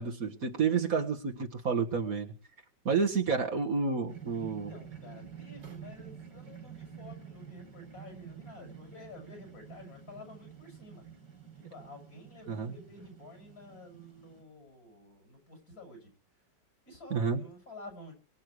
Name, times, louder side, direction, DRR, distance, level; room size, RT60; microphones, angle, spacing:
voice 1, 0.0-2.3 2.9-4.7 12.5-12.7 17.1-17.4, right 5 dB, 50° right, 3 dB, 1.9 m, -30 dB
sound 1, 4.1-14.4, right 7 dB, 70° right, 3.5 m, -49 dB
voice 2, 4.7-11.1 11.5-16.5 16.8-18.1, left 2 dB, 55° left, 4 dB, 8.1 m, -51 dB
23.5 x 8.7 x 4.7 m, 0.37 s
omnidirectional pair, 1.9 m